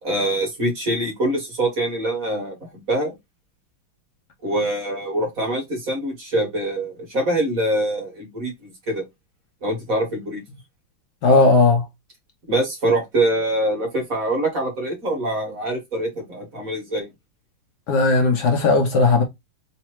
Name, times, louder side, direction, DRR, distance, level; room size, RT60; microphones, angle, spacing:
voice 1, 0.0-3.1 4.4-9.0 9.6-10.4 12.5-17.1, right 1 dB, 45° right, 1.9 m, -24 dB
voice 2, 11.2-11.9 17.9-19.2, left 3 dB, 65° left, 1.2 m, -16 dB
4.0 x 3.0 x 3.0 m
omnidirectional pair, 2.2 m